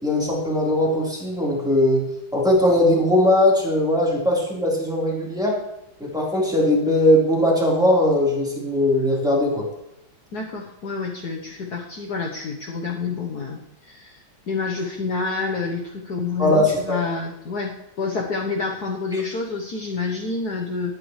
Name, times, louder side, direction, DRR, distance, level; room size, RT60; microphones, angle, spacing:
voice 1, 0.0-5.6 6.0-9.7 16.4-17.0, left 1 dB, ahead, -5 dB, 3.9 m, -20 dB
voice 2, 10.3-20.9, left 4 dB, 55° left, 1 dB, 1.6 m, -28 dB
19.5 x 10.5 x 3.2 m, 0.90 s
omnidirectional pair, 2.1 m